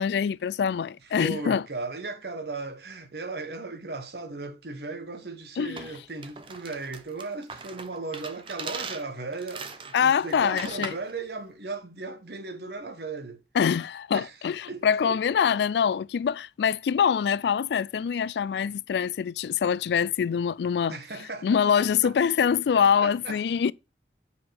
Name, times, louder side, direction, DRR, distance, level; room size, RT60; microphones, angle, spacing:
voice 1, 0.0-1.6 5.6-5.8 9.9-10.9 13.6-21.0 21.4-23.7, left 7 dB, 70° left, 0.3 m, -24 dB
voice 2, 1.2-13.4 14.1-14.3 14.7-15.2 20.9-22.1 23.0-23.4, right 3 dB, 60° right, 1.1 m, -37 dB
sound 1, 5.8-11.1, right 5 dB, 30° right, 0.7 m, -40 dB
5.5 x 4.9 x 6.3 m
head